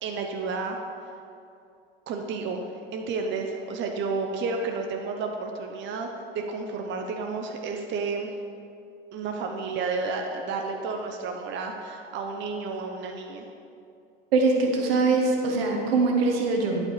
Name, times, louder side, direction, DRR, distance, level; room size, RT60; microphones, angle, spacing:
voice 1, 0.0-0.8 2.1-6.1 6.3-8.3 9.1-13.5, right 4 dB, 40° right, 3 dB, 0.8 m, -31 dB
voice 2, 14.3-16.8, right 3 dB, 75° right, 1 dB, 1.3 m, -22 dB
11.0 x 5.2 x 3.3 m, 2.5 s
hypercardioid pair, 80°, 30 cm